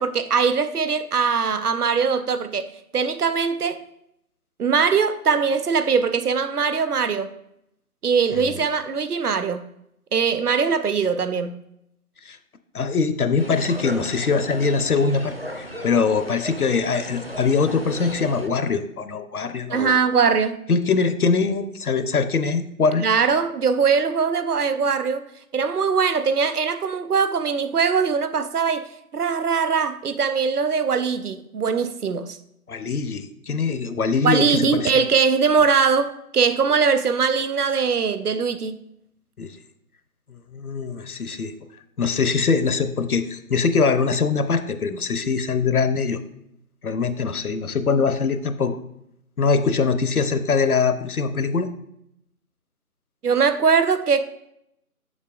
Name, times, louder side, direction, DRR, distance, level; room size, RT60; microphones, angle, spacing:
voice 1, 0.0-3.8 4.6-7.3 8.0-9.6 10.1-11.5 19.7-20.6 23.0-25.2 25.5-32.4 34.2-38.7 53.2-54.2, right 5 dB, 80° right, 0.7 m, -21 dB
voice 2, 8.3-8.6 12.2-12.4 12.7-19.9 20.7-23.0 32.7-34.9 39.4-39.6 40.3-41.5 42.0-46.2 46.8-48.8 49.4-51.7, left 5 dB, 75° left, 0.7 m, -22 dB
sound 1, 13.4-18.5, equal, 45° right, 0.4 m, -35 dB
7.3 x 6.3 x 2.4 m
figure-of-eight pair, 165°, 45 cm